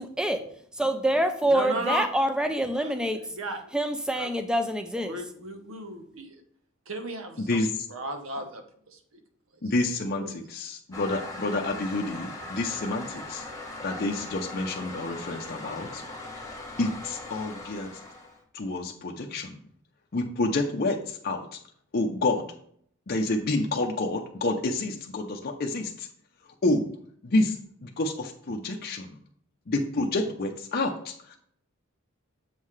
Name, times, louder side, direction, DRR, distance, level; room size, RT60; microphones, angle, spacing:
voice 1, 0.0-0.4 0.8-3.2 3.7-5.2, right 1 dB, 5° right, 8 dB, 0.5 m, -26 dB
voice 2, 1.5-2.1 2.8-2.9 3.3-3.6 4.2-4.3 5.0-6.4 6.9-7.6 7.9-9.0 10.2-10.3, right 1 dB, 75° right, 5 dB, 1.1 m, -34 dB
voice 3, 9.6-13.4 13.8-16.0 16.4-17.9 18.5-19.6 20.1-21.5 21.9-22.5 23.1-26.1 26.6-26.9 27.2-29.2 29.7-31.4, left 2 dB, 50° left, 1 dB, 0.6 m, -29 dB
Toilet flush, 10.9-18.4, left 2 dB, 15° left, 1.2 m, -40 dB
7.4 x 5.5 x 3.2 m, 0.63 s
head